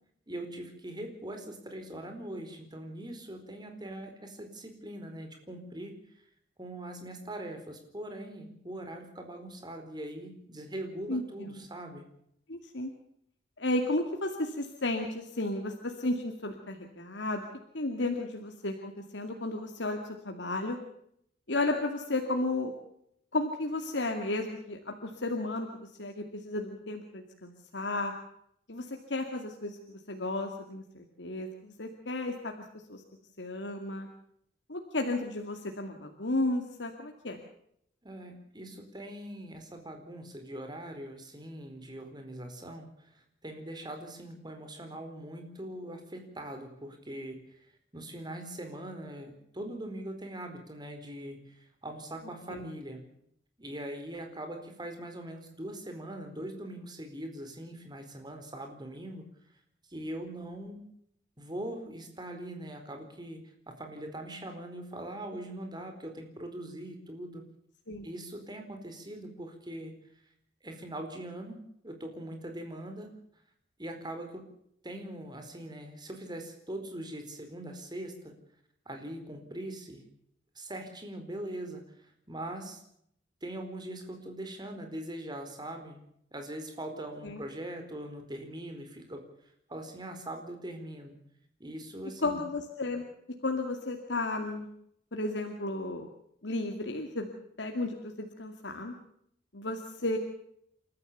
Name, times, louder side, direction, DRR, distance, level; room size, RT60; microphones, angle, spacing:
voice 1, 0.3-5.9 6.6-12.0 38.0-47.7 47.9-53.1 53.6-59.2 59.9-60.8 61.4-67.4 68.0-69.9 70.6-73.1 73.8-74.4 74.8-78.3 78.9-80.0 80.5-82.8 83.4-86.0 86.3-89.2 89.7-91.1 91.6-92.4, right 1 dB, 25° right, 5 dB, 4.4 m, -41 dB
voice 2, 11.1-11.6 12.5-12.9 13.6-17.4 17.7-20.0 20.2-20.8 21.5-22.7 23.3-25.7 26.0-28.1 28.7-32.5 32.9-33.0 33.4-34.1 34.7-37.4 52.5-52.6 67.9-68.1 87.2-87.4 92.2-93.0 93.4-94.7 95.1-96.1 96.4-97.3 97.6-98.9 99.5-100.2, left 2 dB, 80° left, 3 dB, 2.3 m, -33 dB
29.5 x 13.5 x 6.8 m, 0.72 s
head